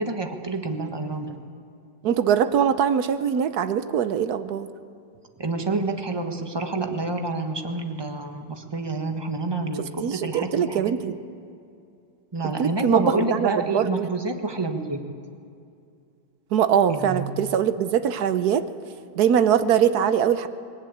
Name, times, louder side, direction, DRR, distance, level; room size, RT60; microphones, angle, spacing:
voice 1, 0.0-1.3 5.4-11.1 12.3-15.0 16.9-17.4, right 3 dB, 15° right, 5 dB, 1.1 m, -28 dB
voice 2, 2.0-4.7 10.0-11.1 12.6-14.1 16.5-18.6 19.2-20.5, right 8 dB, 60° right, 11 dB, 1.1 m, -22 dB
20.5 x 18.5 x 8.6 m, 2.5 s
omnidirectional pair, 2.2 m